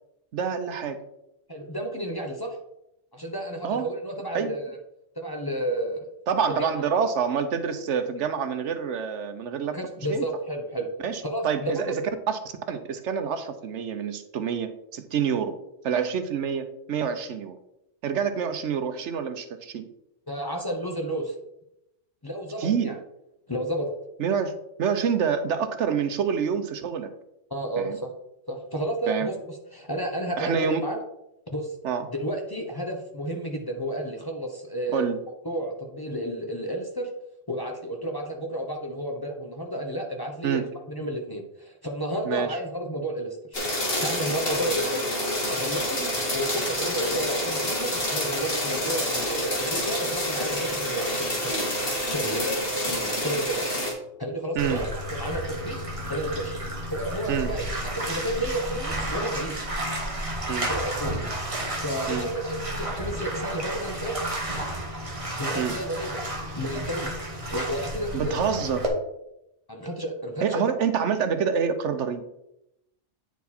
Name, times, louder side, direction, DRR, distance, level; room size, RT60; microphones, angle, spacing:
voice 1, 0.3-1.0 3.6-3.9 4.3-4.5 6.3-9.8 10.1-10.2 11.0-15.6 15.8-17.6 18.0-19.9 22.6-22.9 24.2-24.5 24.8-27.1 27.8-28.0 29.1-29.3 30.4-30.8 31.8-32.1 34.9-35.2 40.4-40.7 42.2-42.6 46.0-46.1 54.5-54.8 57.3-57.5 60.5-60.7 62.1-62.3 65.6-65.7 68.1-68.8 70.4-72.2, right 7 dB, 75° right, 9 dB, 1.0 m, -27 dB
voice 2, 1.5-2.6 3.1-4.8 5.1-6.1 6.5-6.7 9.7-10.9 11.2-11.9 20.3-21.4 22.2-23.0 23.5-23.9 27.5-28.1 28.5-31.0 31.5-31.8 32.1-35.1 35.4-37.1 37.5-43.4 43.8-45.0 45.5-46.0 46.3-53.6 54.2-55.8 56.1-56.6 56.9-59.7 60.7-61.2 61.8-64.7 65.4-66.2 66.6-67.1 67.5-68.4 69.7-70.7, right 1 dB, 20° left, 2 dB, 0.9 m, -31 dB
sound 1, 43.5-53.9, left 1 dB, 50° left, 2.2 m, -28 dB
Bathtub (filling or washing), 54.6-68.9, right 1 dB, 30° right, 1.3 m, -32 dB
9.2 x 4.6 x 4.2 m, 0.83 s
omnidirectional pair, 1.2 m